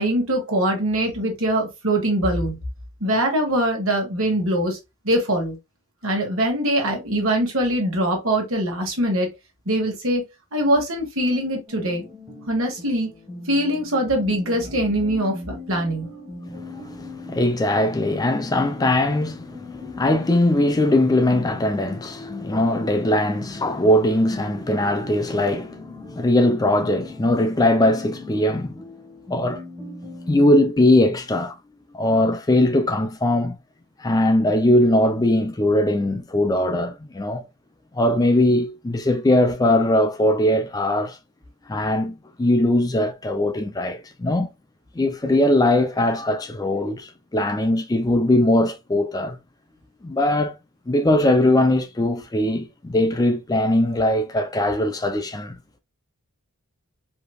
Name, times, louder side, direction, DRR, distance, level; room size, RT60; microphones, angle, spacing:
voice 1, 0.0-2.6 3.0-4.8 5.0-5.6 6.0-9.3 9.6-10.2 10.5-12.0 12.5-13.1 13.5-16.1, right 1 dB, 65° right, 1.5 m, -22 dB
sound 1, 11.7-30.5, left 3 dB, 10° right, 1.5 m, -40 dB
voice 2, 16.5-28.8 29.3-29.6 30.3-31.6 31.9-33.6 34.0-37.4 37.9-41.2 41.7-44.5 45.0-49.4 50.0-50.5 50.9-55.6, left 1 dB, 15° left, 0.4 m, -20 dB
4.9 x 2.8 x 2.3 m
head